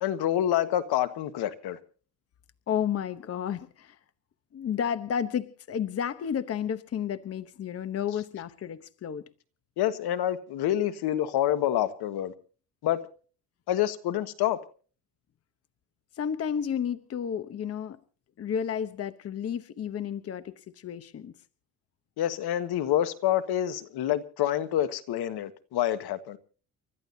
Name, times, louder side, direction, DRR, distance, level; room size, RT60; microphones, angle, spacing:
voice 1, 0.0-1.8 9.8-12.3 12.8-13.0 13.7-14.6 22.2-26.4, left 12 dB, 70° left, 1.5 m, -27 dB
voice 2, 2.7-4.0 4.5-9.2 16.1-18.0 18.4-21.3, left 8 dB, 35° left, 0.9 m, -32 dB
30.0 x 13.5 x 2.7 m
cardioid pair, 135°, 40 cm